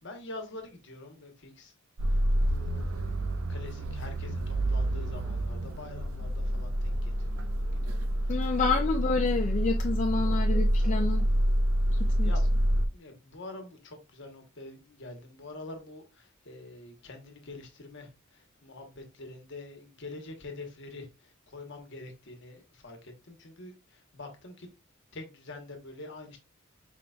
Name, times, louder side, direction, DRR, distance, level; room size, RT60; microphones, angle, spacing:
voice 1, 0.0-1.7 2.1-3.1 3.5-8.9 11.9-12.4 12.9-24.7 25.1-26.4, left 2 dB, 60° left, 1.1 m, -46 dB
sound 1, 2.0-12.9, equal, 85° right, 0.6 m, -27 dB
voice 2, 8.3-11.3 12.2-12.3, left 4 dB, 35° left, 0.4 m, -28 dB
4.6 x 3.9 x 2.3 m
head